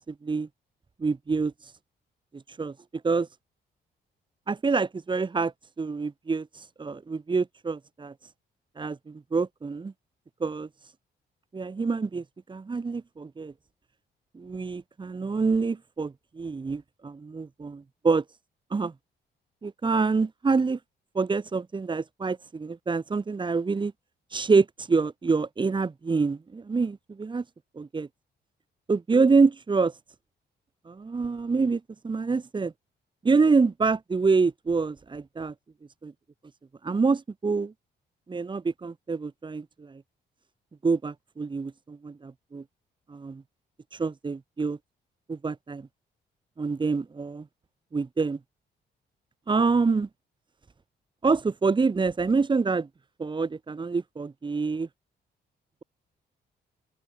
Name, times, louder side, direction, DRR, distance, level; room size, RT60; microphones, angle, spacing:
voice 1, 0.1-0.5 1.0-1.7 2.3-2.7 3.0-3.3 4.5-5.5 5.8-8.1 8.8-9.9 10.4-10.7 11.5-13.5 14.3-18.2 18.7-18.9 19.6-20.8 21.1-23.9 24.3-27.4 27.7-28.1 28.9-30.0 30.9-32.7 33.2-35.5 36.0-36.1 36.8-37.7 38.3-40.0 40.8-42.6 43.1-43.4 43.9-44.8 45.3-45.9 46.6-47.5 47.9-48.4 49.5-50.1 51.2-52.9 53.2-54.9, right 4 dB, 25° right, 4.1 m, -26 dB
open air
cardioid pair, 140°, 18 cm